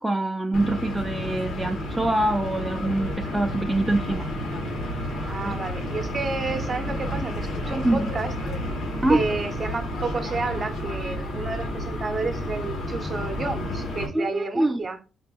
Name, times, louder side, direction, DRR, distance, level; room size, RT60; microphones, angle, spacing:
voice 1, 0.0-4.3 5.5-5.6 7.8-8.1 9.0-9.2 14.1-14.8, right 1 dB, 10° right, 0.5 m, -24 dB
sound 1, 0.5-14.1, left 1 dB, 70° left, 1.5 m, -31 dB
voice 2, 5.3-8.3 9.1-15.0, right 3 dB, 35° right, 0.8 m, -30 dB
4.4 x 3.3 x 2.4 m
cardioid pair, 90°, 0 cm